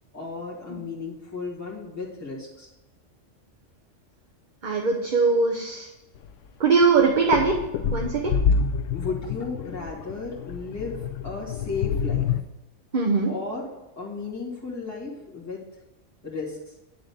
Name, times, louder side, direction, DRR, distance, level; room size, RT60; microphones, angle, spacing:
voice 1, 0.1-2.7 8.9-12.3 13.3-13.7 14.0-15.6 16.2-16.6, left 4 dB, 15° left, -6 dB, 2.0 m, -34 dB
voice 2, 4.6-5.9 6.6-7.6 7.9-8.3 12.9-13.3, right 4 dB, 45° right, 1 dB, 0.9 m, -21 dB
sound 1, 6.2-6.3 6.8-12.4, left 6 dB, 80° left, 1.0 m, -27 dB
9.7 x 3.8 x 6.9 m, 0.99 s
omnidirectional pair, 1.3 m